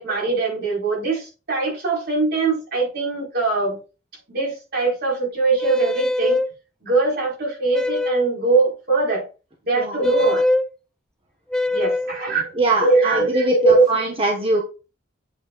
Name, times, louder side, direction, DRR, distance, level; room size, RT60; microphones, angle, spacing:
voice 1, 0.0-3.8 4.3-6.4 6.8-9.2 9.6-10.4 11.7-12.5 12.8-13.8, right 3 dB, 55° right, -2 dB, 4.6 m, -21 dB
sound 1, 5.6-6.5 7.7-8.3 10.0-10.7 11.5-12.2, left 2 dB, 5° left, 0.5 m, -22 dB
voice 2, 12.6-14.6, right 2 dB, 30° right, 1 dB, 1.4 m, -22 dB
8.8 x 8.6 x 2.5 m, 0.33 s
head